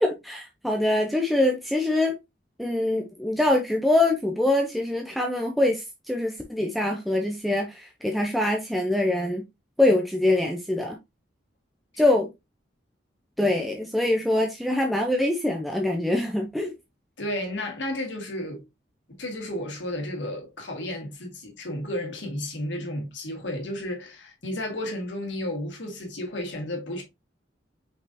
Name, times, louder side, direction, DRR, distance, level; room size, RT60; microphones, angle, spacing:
voice 1, 0.0-2.1 2.6-9.4 9.8-11.0 12.0-12.3 13.4-16.7, left 1 dB, ahead, 0.6 m, -24 dB
voice 2, 17.2-18.6 19.2-27.0, left 1 dB, 75° left, 1.7 m, -32 dB
5.2 x 3.8 x 2.6 m
head